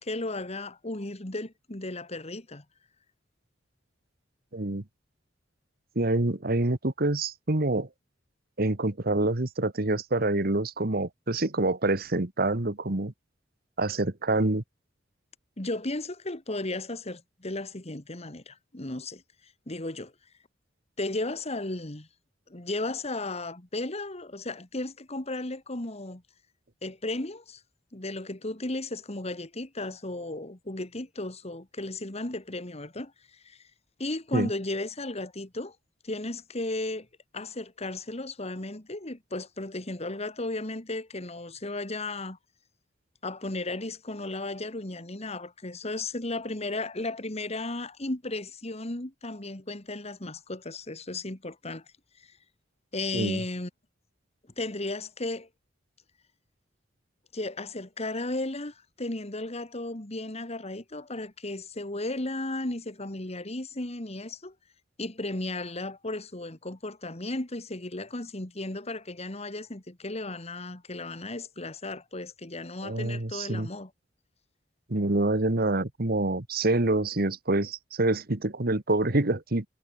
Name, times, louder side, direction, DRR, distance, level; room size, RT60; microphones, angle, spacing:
voice 1, 0.0-2.6 15.6-19.2 19.7-20.1 21.0-22.1 22.5-26.2 26.8-27.6 27.9-33.1 33.4-33.6 34.0-35.8 36.0-37.1 37.3-42.4 43.2-51.8 52.9-53.7 54.6-55.5 57.3-64.5 65.0-73.9, left 2 dB, 35° left, 2.2 m, -35 dB
voice 2, 4.5-4.8 5.9-7.9 8.6-13.1 13.8-14.6 34.3-34.5 53.1-53.4 72.8-73.7 74.9-79.6, right 2 dB, 55° right, 1.6 m, -26 dB
head